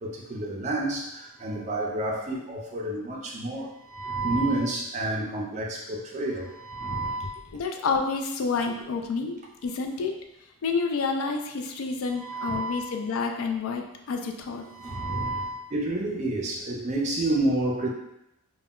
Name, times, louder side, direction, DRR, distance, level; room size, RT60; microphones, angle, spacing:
voice 1, 0.0-7.4 12.1-13.0 14.7-17.9, right 2 dB, 30° right, -1 dB, 0.4 m, -30 dB
voice 2, 7.5-10.1 10.6-14.6, left 4 dB, 70° left, 4 dB, 0.3 m, -29 dB
2.2 x 2.0 x 3.5 m, 0.85 s
head